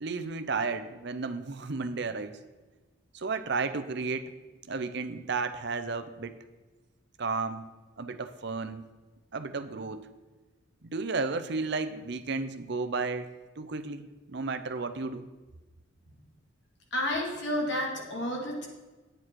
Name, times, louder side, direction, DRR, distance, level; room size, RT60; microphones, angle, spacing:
voice 1, 0.0-2.4 3.1-4.3 4.7-6.4 7.2-7.7 8.0-8.8 9.3-10.1 10.8-15.3, right 4 dB, 55° right, 10 dB, 0.6 m, -33 dB
voice 2, 16.9-18.7, left 1 dB, 60° left, -1 dB, 2.3 m, -31 dB
9.1 x 8.7 x 4.6 m, 1.2 s
head